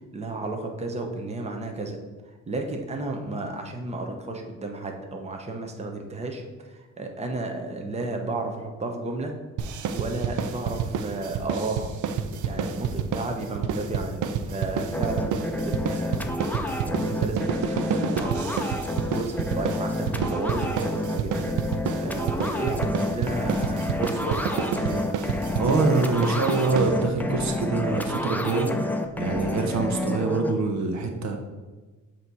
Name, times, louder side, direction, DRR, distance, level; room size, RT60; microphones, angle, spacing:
voice 1, 0.1-2.0 2.2-9.3 9.7-11.9 12.4-25.1, right 2 dB, 20° right, 3 dB, 0.9 m, -33 dB
sound 1, 9.6-27.4, right 6 dB, 85° right, 0.5 m, -29 dB
sound 2, 14.9-30.5, left 1 dB, 5° left, 0.5 m, -29 dB
voice 2, 25.6-31.4, right 3 dB, 65° right, 4 dB, 0.9 m, -25 dB
7.9 x 2.9 x 4.6 m, 1.3 s
cardioid pair, 90°, 30 cm